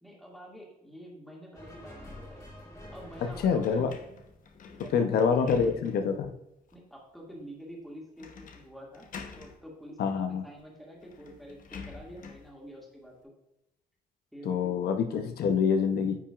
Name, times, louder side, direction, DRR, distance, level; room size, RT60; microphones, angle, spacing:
voice 1, 0.0-2.5 2.9-3.9 4.7-5.6 6.7-9.1 9.3-13.3 14.3-14.8, equal, ahead, -3 dB, 2.1 m, -47 dB
sound 1, 1.5-5.0, left 1 dB, 25° left, 2.4 m, -48 dB
voice 2, 3.4-3.9 4.9-6.3 10.0-10.4 14.4-16.2, left 6 dB, 85° left, 6 dB, 0.7 m, -26 dB
sound 2, 3.6-6.2 6.7-6.8 8.2-8.7 8.9-9.6 10.6-10.7 11.0-12.5, left 5 dB, 60° left, 0.9 m, -47 dB
9.5 x 5.9 x 2.4 m, 0.88 s
cardioid pair, 125°, 16 cm